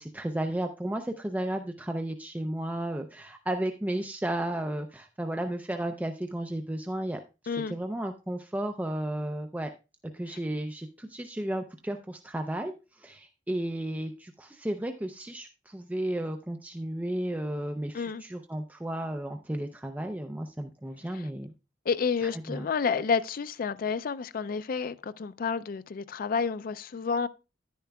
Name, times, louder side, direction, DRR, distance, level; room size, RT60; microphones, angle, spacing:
voice 1, 0.0-7.2 7.7-9.7 10.1-21.5 22.5-22.7, right 1 dB, 10° right, 0.5 m, -33 dB
voice 2, 21.9-27.3, left 5 dB, 50° left, 0.4 m, -30 dB
10.0 x 10.0 x 2.3 m
head